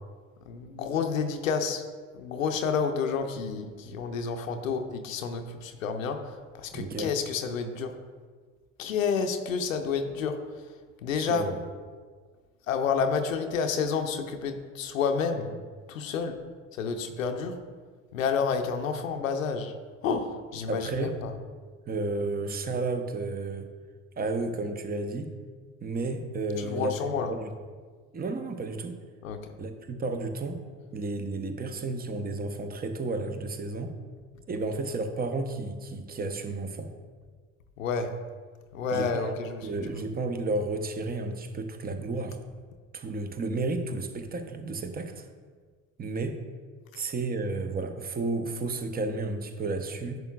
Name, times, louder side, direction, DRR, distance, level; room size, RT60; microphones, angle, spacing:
voice 1, 0.5-1.8 2.1-7.9 8.8-10.4 11.0-11.5 12.7-15.5 15.9-16.4 16.7-17.6 18.1-19.7 20.0-21.3 26.6-27.3 29.2-29.5 37.8-38.1 38.7-40.0, left 5 dB, 85° left, 6 dB, 0.6 m, -30 dB
voice 2, 6.7-7.1 11.3-11.6 20.7-21.2 21.9-23.7 24.2-25.3 25.8-27.0 27.3-27.5 28.1-29.0 29.6-30.6 30.9-33.9 34.5-36.9 38.9-39.3 39.6-42.4 42.9-45.2 46.0-46.4 46.9-50.2, right 3 dB, 25° right, 7 dB, 0.8 m, -32 dB
10.5 x 6.7 x 2.3 m, 1.5 s
hypercardioid pair, 60°, 39 cm